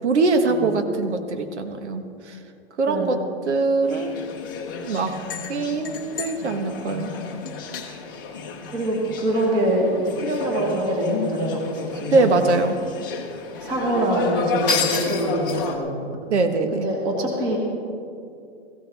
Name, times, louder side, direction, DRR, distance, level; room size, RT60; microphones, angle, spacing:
voice 1, 0.0-2.4 2.8-3.2 3.5-4.2 4.8-5.1 5.5-7.1 12.1-12.8 16.3-16.9, right 3 dB, 80° right, 7 dB, 1.4 m, -22 dB
sound 1, 3.9-15.8, left 5 dB, 20° left, 0.8 m, -32 dB
voice 2, 8.7-12.3 13.6-16.0 16.7-17.6, right 1 dB, 15° right, 0 dB, 1.4 m, -24 dB
18.0 x 15.5 x 3.5 m, 2.5 s
hypercardioid pair, 175°, 34 cm